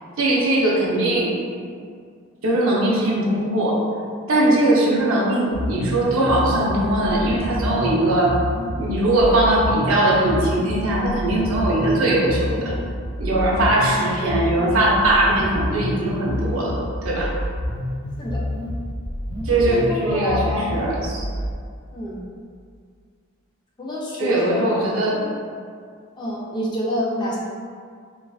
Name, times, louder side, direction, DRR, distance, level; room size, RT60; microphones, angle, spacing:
voice 1, 0.2-1.4 2.4-3.8 4.3-8.4 8.7-12.7 13.2-17.4 19.4-21.3 24.2-25.3, right 1 dB, 75° right, -4 dB, 0.5 m, -20 dB
sound 1, 5.5-21.5, left 1 dB, 90° left, 0.5 m, -28 dB
voice 2, 19.7-20.7 21.9-22.2 23.8-24.9 26.2-27.4, left 1 dB, 20° left, -4 dB, 0.3 m, -27 dB
2.3 x 2.3 x 2.3 m, 2.1 s
head